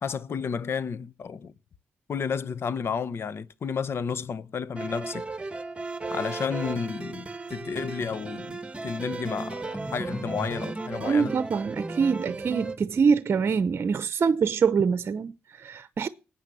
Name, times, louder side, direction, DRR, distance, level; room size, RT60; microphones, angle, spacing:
voice 1, 0.0-1.5 2.1-5.3 6.1-11.4, left 6 dB, 60° left, 1.1 m, -32 dB
sound 1, 4.8-12.8, right 3 dB, 25° right, 1.7 m, -35 dB
voice 2, 11.0-16.1, right 6 dB, 55° right, 0.8 m, -25 dB
18.5 x 9.1 x 7.0 m
cardioid pair, 65°, 5 cm